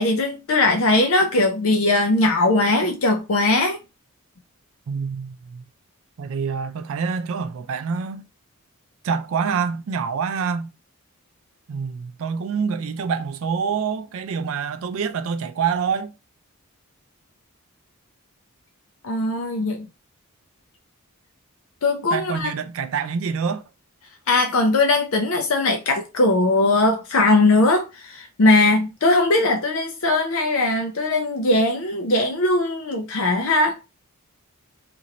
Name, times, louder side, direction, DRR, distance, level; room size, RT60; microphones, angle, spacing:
voice 1, 0.0-3.8 19.0-19.9 21.8-22.5 24.3-33.7, left 2 dB, 65° left, 0.5 m, -20 dB
voice 2, 4.9-5.6 6.2-8.3 9.0-10.7 11.7-16.1 22.1-23.6, right 6 dB, 65° right, 0.3 m, -26 dB
3.0 x 2.6 x 4.0 m
head